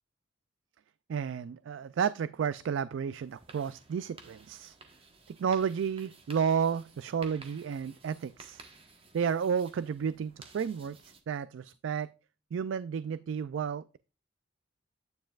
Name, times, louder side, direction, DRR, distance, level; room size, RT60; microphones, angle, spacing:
voice 1, 1.1-4.8 5.3-8.6 9.1-12.1 12.5-14.0, right 7 dB, 75° right, 0.3 m, -32 dB
sound 1, 3.1-11.2, right 3 dB, 30° right, 1.2 m, -55 dB
9.3 x 7.5 x 2.4 m
head